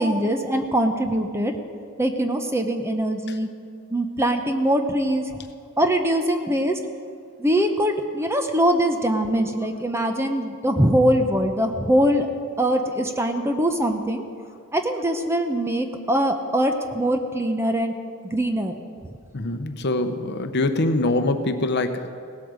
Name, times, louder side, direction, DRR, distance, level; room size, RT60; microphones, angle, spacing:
voice 1, 0.0-1.5 2.0-3.5 3.9-5.2 5.8-6.8 7.4-12.3 12.6-14.2 14.7-17.9 18.3-18.7, right 1 dB, 10° right, 6 dB, 0.8 m, -22 dB
voice 2, 19.3-22.1, left 2 dB, 50° left, 8 dB, 0.8 m, -24 dB
17.5 x 8.5 x 6.4 m, 2.3 s
head